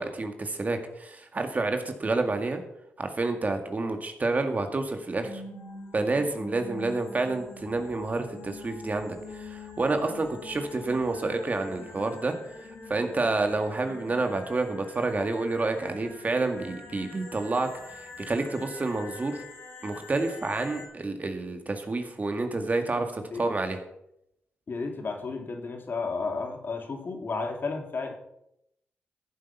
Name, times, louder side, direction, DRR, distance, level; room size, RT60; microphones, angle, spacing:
voice 1, 0.0-2.6 3.0-5.3 5.9-12.3 12.9-19.4 19.8-23.8, right 3 dB, 35° right, 6 dB, 2.1 m, -29 dB
sound 1, 5.2-20.9, left 3 dB, 70° left, 5.2 m, -45 dB
voice 2, 24.7-28.1, left 4 dB, 50° left, 4 dB, 2.5 m, -32 dB
14.5 x 7.7 x 5.8 m, 0.79 s
cardioid pair, 60°, 4 cm